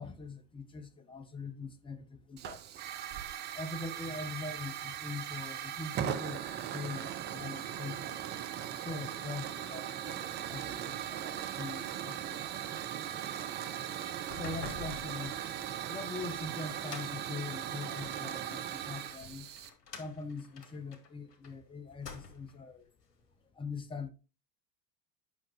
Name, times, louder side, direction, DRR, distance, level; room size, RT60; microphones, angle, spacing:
voice 1, 0.0-2.8 3.5-8.3 8.5-13.1 13.4-13.5 14.3-15.4 15.9-19.5 20.0-22.9 23.5-24.1, left 4 dB, 10° left, 0.8 m, -43 dB
Hiss / Fire, 2.4-19.7, right 10 dB, 20° right, 0.5 m, -39 dB
sound 1, 14.2-18.2 18.8-21.5 21.9-22.6, left 5 dB, 70° left, 1.6 m, -48 dB
9.4 x 5.8 x 3.2 m
figure-of-eight pair, 85°, 49 cm